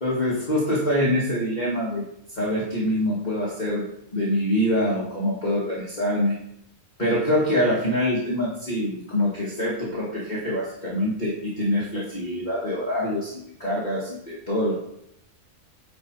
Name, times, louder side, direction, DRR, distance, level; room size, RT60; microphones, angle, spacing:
voice 1, 0.0-2.0 2.3-3.9 4.1-6.4 7.0-14.7, left 1 dB, 35° left, -7 dB, 2.3 m, -25 dB
9.6 x 5.4 x 4.7 m, 0.74 s
omnidirectional pair, 1.3 m